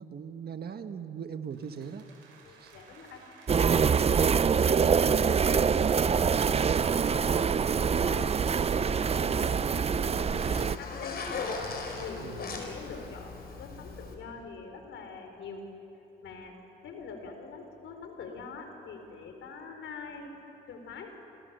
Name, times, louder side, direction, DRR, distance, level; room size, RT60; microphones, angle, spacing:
voice 1, 0.0-2.1 2.6-2.7 12.2-12.4, right 7 dB, 50° right, 8 dB, 1.6 m, -40 dB
sound 1, 1.5-6.3, right 4 dB, 90° right, 4.7 m, -57 dB
voice 2, 2.4-3.2 3.6-7.3 7.8-8.3 8.7-11.2 12.0-15.7 16.2-16.5 16.8-20.3 20.7-21.1, left 5 dB, 75° left, 5 dB, 4.4 m, -44 dB
sound 2, 3.5-10.8, right 6 dB, 30° right, 0.5 m, -25 dB
Zipper (clothing), 7.3-14.1, left 4 dB, 50° left, 4.9 m, -40 dB
27.5 x 27.0 x 6.9 m, 3.0 s
cardioid pair, 90°, 20 cm